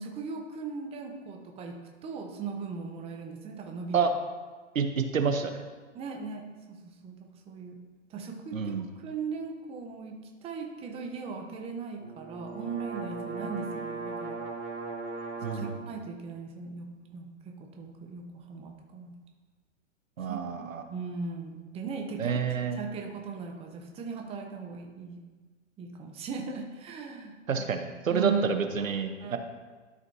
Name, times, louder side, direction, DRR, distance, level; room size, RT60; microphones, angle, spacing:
voice 1, 0.0-4.1 5.9-7.8 8.1-14.4 15.4-19.2 20.3-20.4 20.9-25.2 25.8-28.6 29.2-29.4, right 5 dB, 15° right, 2 dB, 0.8 m, -38 dB
voice 2, 4.7-5.6 8.5-8.8 15.4-15.7 20.2-20.8 22.2-22.8 27.5-29.4, right 6 dB, 90° right, 7 dB, 1.0 m, -28 dB
sound 1, 12.0-15.9, right 3 dB, 45° right, 1.7 m, -38 dB
12.5 x 5.1 x 2.7 m, 1.3 s
hypercardioid pair, 125°, 39 cm